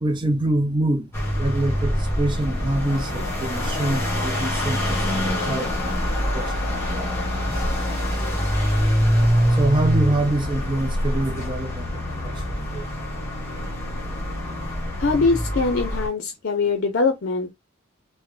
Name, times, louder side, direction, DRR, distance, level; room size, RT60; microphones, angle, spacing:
voice 1, 0.0-1.1 1.4-5.9 6.3-6.5 7.0-7.1 9.6-12.9, right 1 dB, 20° right, 0.5 m, -25 dB
sound 1, 1.1-16.1, equal, 10° left, 1.4 m, -24 dB
voice 2, 15.0-17.5, left 4 dB, 55° left, 0.6 m, -22 dB
3.6 x 2.1 x 3.1 m
head